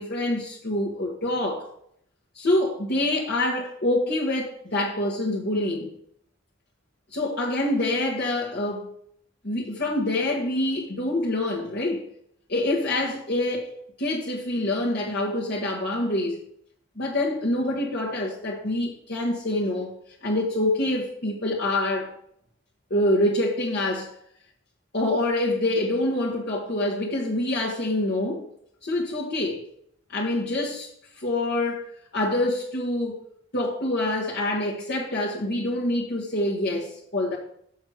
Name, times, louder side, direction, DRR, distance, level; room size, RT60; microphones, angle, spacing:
voice 1, 0.0-1.7 2.3-5.9 7.1-8.9 9.4-12.0 12.5-13.7 14.0-16.4 17.0-19.9 20.2-22.1 22.9-24.1 24.9-28.4 28.8-29.6 30.1-30.9 31.2-33.2 33.5-37.4, left 1 dB, 55° left, 1.3 m, -26 dB
6.5 x 6.3 x 4.9 m
head